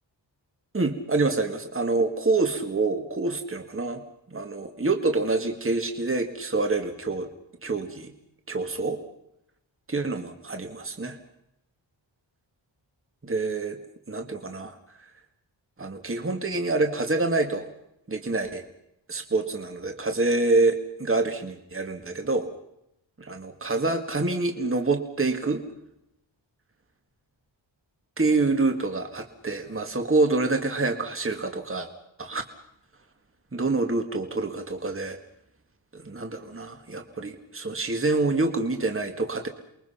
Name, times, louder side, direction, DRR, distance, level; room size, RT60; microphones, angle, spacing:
voice 1, 0.7-4.0 4.3-7.3 7.6-8.1 8.5-9.0 9.9-11.2 13.2-13.8 14.1-14.8 15.8-17.7 18.1-18.6 19.1-22.5 23.2-25.6 28.2-31.9 32.2-32.4 33.5-35.2 35.9-39.5, right 3 dB, 25° right, 5 dB, 2.1 m, -26 dB
29.0 x 22.5 x 5.8 m, 0.81 s
wide cardioid pair, 105°, 46 cm